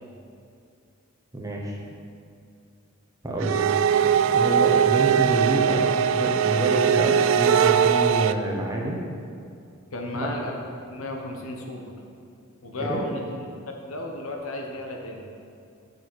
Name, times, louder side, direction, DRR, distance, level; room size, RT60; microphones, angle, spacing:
voice 1, 1.3-1.8 3.2-3.7 4.0-9.0 10.1-10.3 12.9-13.0, right 1 dB, 15° right, -2 dB, 1.0 m, -28 dB
sound 1, 3.4-8.3, right 8 dB, 65° right, 0.3 m, -20 dB
voice 2, 9.9-10.6 10.9-11.8 12.6-15.2, left 2 dB, 75° left, 1 dB, 1.2 m, -34 dB
7.4 x 6.3 x 6.2 m, 2.4 s
head